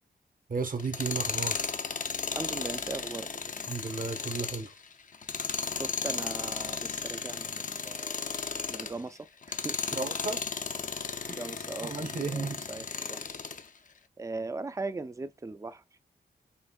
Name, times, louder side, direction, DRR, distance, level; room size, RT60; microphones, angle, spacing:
voice 1, 0.5-1.7 3.7-4.7 9.9-10.4 11.3-11.5 11.8-12.6, right 4 dB, 55° right, 1.0 m, -34 dB
Tools, 0.8-9.0 9.4-13.7, left 5 dB, 50° left, 0.6 m, -35 dB
voice 2, 2.4-3.6 5.7-8.2 8.7-10.0 11.3-13.4 14.2-15.8, right 3 dB, 20° right, 0.4 m, -39 dB
5.8 x 3.4 x 2.3 m
cardioid pair, 65°, 17 cm